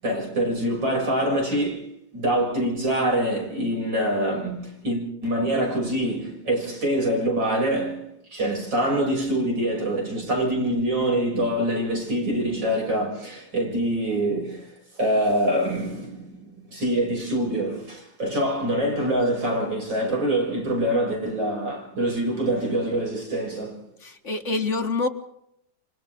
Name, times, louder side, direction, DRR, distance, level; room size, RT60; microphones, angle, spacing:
voice 1, 0.0-23.8, right 1 dB, 55° right, 7.4 m, -25 dB
voice 2, 24.0-25.1, left 3 dB, 35° left, 1.7 m, -26 dB
28.5 x 26.5 x 3.7 m
omnidirectional pair, 2.4 m